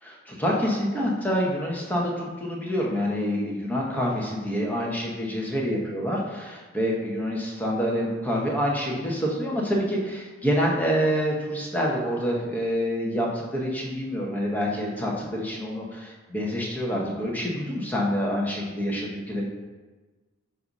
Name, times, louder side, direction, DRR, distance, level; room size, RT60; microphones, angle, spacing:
voice 1, 0.0-19.5, equal, 10° left, -3 dB, 1.0 m, -27 dB
7.7 x 2.7 x 5.4 m, 1.3 s
head